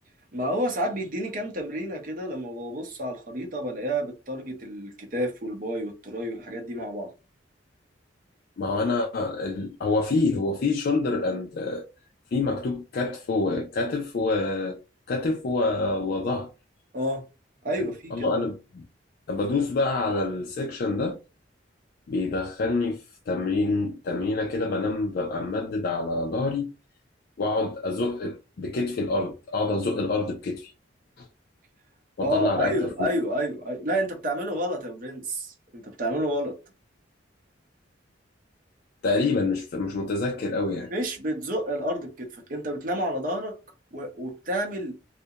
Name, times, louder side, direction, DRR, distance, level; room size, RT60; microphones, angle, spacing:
voice 1, 0.3-7.1 16.9-17.2 17.6-18.5 32.2-36.6 40.9-43.6 43.9-44.9, equal, 45° right, 0.7 m, -30 dB
voice 2, 8.6-11.8 12.3-14.8 15.1-16.5 18.1-18.8 19.3-21.2 22.1-26.7 27.4-30.7 31.2-31.3 32.2-32.7 33.0-33.1 39.0-40.9, left 3 dB, 55° left, 0.4 m, -27 dB
2.4 x 2.1 x 2.7 m
head